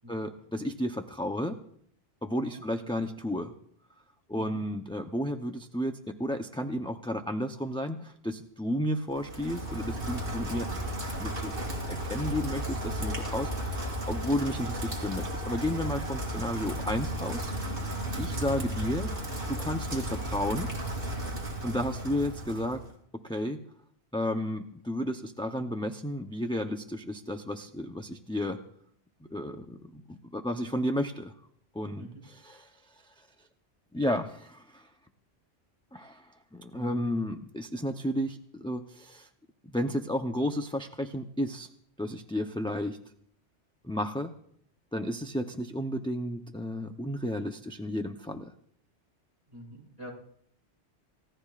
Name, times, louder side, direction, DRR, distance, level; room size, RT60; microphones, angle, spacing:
voice 1, 0.1-1.6 2.2-3.5 4.3-10.7 11.2-11.5 11.9-17.5 18.2-19.1 19.5-20.7 21.6-22.9 23.2-23.6 24.1-28.6 29.2-31.3 31.7-33.3 33.9-34.9 35.9-39.3 39.6-41.7 42.0-43.0 43.8-44.3 44.9-48.5, equal, 5° left, 4 dB, 0.6 m, -32 dB
voice 2, 2.3-2.6 4.3-4.6 32.0-32.1 36.7-37.1 49.5-50.1, equal, 25° right, -4 dB, 5.1 m, -45 dB
Rain, 9.1-22.9, right 1 dB, 55° right, 3.5 m, -34 dB
29.0 x 16.5 x 2.5 m, 0.66 s
omnidirectional pair, 1.2 m